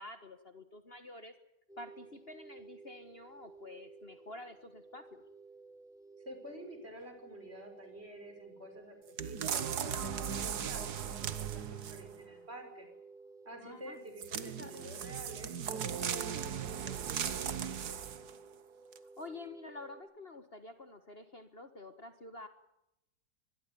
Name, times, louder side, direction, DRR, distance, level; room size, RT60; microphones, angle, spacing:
voice 1, 0.0-1.3 1.8-5.2 13.6-14.0 14.6-14.9 19.2-22.5, left 2 dB, 35° left, 8 dB, 1.8 m, -49 dB
sound 1, 1.7-20.0, right 4 dB, ahead, 3.5 m, -55 dB
voice 2, 6.2-12.9 13.4-18.0, equal, 35° right, 5 dB, 6.3 m, -49 dB
sound 2, 9.2-12.2 14.2-18.4 18.9-19.0, right 8 dB, 70° right, 1.8 m, -37 dB
24.5 x 21.5 x 7.0 m, 0.86 s
omnidirectional pair, 1.8 m